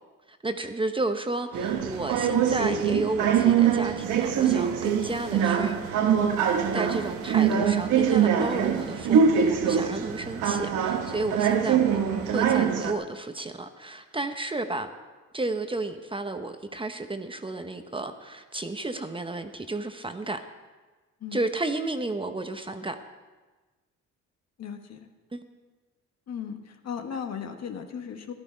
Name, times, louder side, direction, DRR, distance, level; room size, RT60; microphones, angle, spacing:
voice 1, 0.3-5.8 6.7-14.9 15.3-20.5 21.3-23.0 25.3-25.4, right 2 dB, 15° right, 7 dB, 0.9 m, -32 dB
sound 1, 1.5-12.9, right 7 dB, 80° right, 1.2 m, -23 dB
voice 2, 24.6-25.1 26.3-28.3, left 7 dB, 60° left, 5 dB, 1.4 m, -36 dB
14.0 x 12.0 x 5.1 m, 1.3 s
cardioid pair, 90°, 30 cm